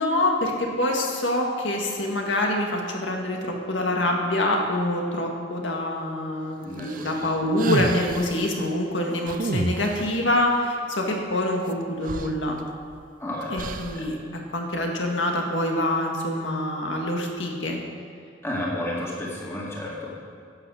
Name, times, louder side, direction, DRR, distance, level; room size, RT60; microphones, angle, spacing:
voice 1, 0.0-12.6 13.5-14.2 14.5-17.8, left 1 dB, 85° left, 1 dB, 1.8 m, -25 dB
voice 2, 6.6-7.2 13.2-14.1 18.4-20.1, left 1 dB, 15° left, -5 dB, 2.1 m, -32 dB
sound 1, 6.8-8.4 9.3-10.2 11.7-11.8 12.0-13.0 13.6-14.1, right 3 dB, 45° right, 0.5 m, -30 dB
11.0 x 8.1 x 6.4 m, 2.4 s
head